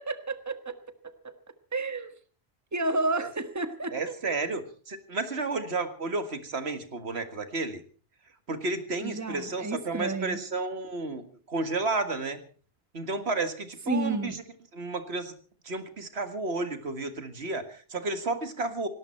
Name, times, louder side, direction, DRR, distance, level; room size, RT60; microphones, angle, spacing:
voice 1, 0.0-1.3 1.7-2.1 2.7-4.1 9.0-10.4 13.9-14.3, right 2 dB, 15° right, 10 dB, 1.3 m, -31 dB
voice 2, 3.9-7.8 8.5-12.4 12.9-14.4 14.7-15.3 15.7-18.9, right 3 dB, 80° right, 9 dB, 2.0 m, -32 dB
18.5 x 18.0 x 4.4 m, 0.41 s
omnidirectional pair, 1.1 m